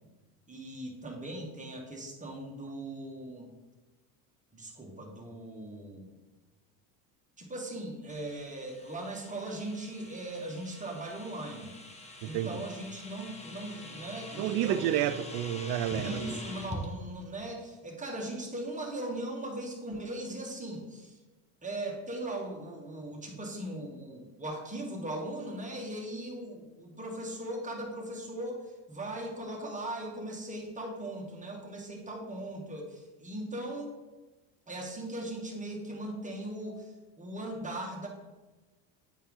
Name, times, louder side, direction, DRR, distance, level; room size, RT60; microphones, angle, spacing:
voice 1, 0.5-3.5 4.5-6.2 7.4-11.7 12.2-14.8 16.0-21.2 21.6-33.9 34.7-38.1, right 1 dB, 15° right, -1 dB, 1.7 m, -39 dB
sound 1, 8.1-16.8, left 2 dB, 15° left, 1.1 m, -45 dB
voice 2, 12.2-12.6 14.4-16.2, right 11 dB, 55° right, 13 dB, 0.5 m, -30 dB
9.3 x 4.3 x 3.7 m, 1.2 s
hypercardioid pair, 80°, 45 cm